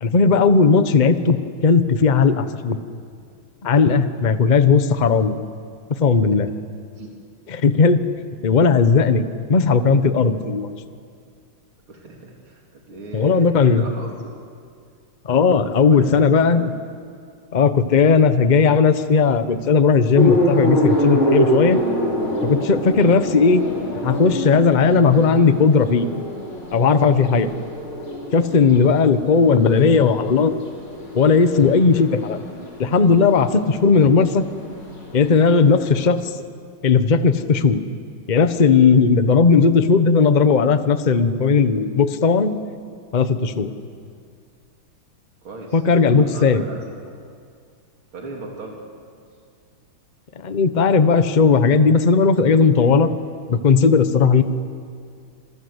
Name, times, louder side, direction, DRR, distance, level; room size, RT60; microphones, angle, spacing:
voice 1, 0.0-2.8 3.6-5.4 6.0-6.5 7.5-8.0 8.4-10.7 13.1-13.8 15.2-16.6 17.5-21.8 22.4-23.6 24.0-26.1 26.7-27.5 28.3-30.5 31.1-32.4 32.8-34.4 35.1-36.4 36.8-37.8 38.3-42.5 43.1-43.7 45.7-46.6 50.4-53.1 53.5-54.4, left 5 dB, 30° left, 10 dB, 0.8 m, -16 dB
voice 2, 11.9-14.3 15.9-16.8 45.4-47.2 48.1-48.8, right 2 dB, 90° right, -1 dB, 3.7 m, -37 dB
sound 1, 20.1-36.0, equal, 80° left, 6.3 m, -26 dB
27.5 x 21.5 x 8.1 m, 2.2 s
omnidirectional pair, 2.2 m